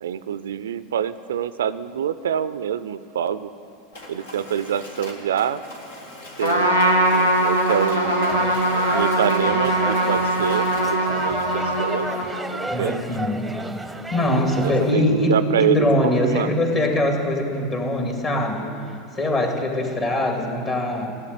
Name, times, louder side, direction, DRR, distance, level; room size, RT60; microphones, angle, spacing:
voice 1, 0.0-3.5 4.1-5.6 6.4-8.4 8.9-12.1 12.5-13.0 14.6-16.5, right 9 dB, 70° right, 15 dB, 0.4 m, -26 dB
Mechanisms, 3.9-11.0, left 1 dB, 70° left, 2.1 m, -41 dB
Trumpet, 6.4-12.6, right 1 dB, 85° left, 1.6 m, -21 dB
sound 1, 8.0-14.9, right 2 dB, 5° right, 0.9 m, -33 dB
voice 2, 12.7-13.5 14.1-18.7 19.1-21.1, left 1 dB, 35° left, 2 dB, 2.5 m, -22 dB
15.5 x 8.4 x 9.2 m, 2.5 s
figure-of-eight pair, 80°, 0 cm